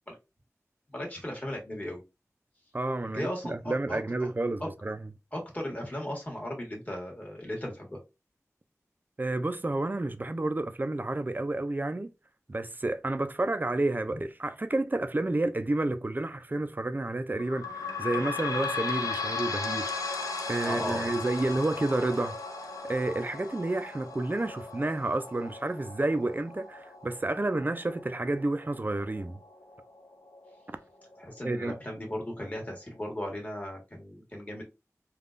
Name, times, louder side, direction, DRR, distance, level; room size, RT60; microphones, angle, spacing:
voice 1, 0.9-2.0 3.1-4.3 4.6-4.7 5.3-8.0 20.6-21.1 31.2-34.6, left 1 dB, 25° left, 1.4 m, -36 dB
voice 2, 2.7-5.1 9.2-12.1 12.5-22.4 22.8-29.4 31.4-31.8, right 2 dB, 35° right, 0.4 m, -30 dB
sound 1, 17.4-30.5 31.1-31.2 31.5-31.6 32.4-32.5, left 4 dB, 85° left, 0.5 m, -37 dB
3.5 x 2.3 x 2.5 m
wide cardioid pair, 45°, 6 cm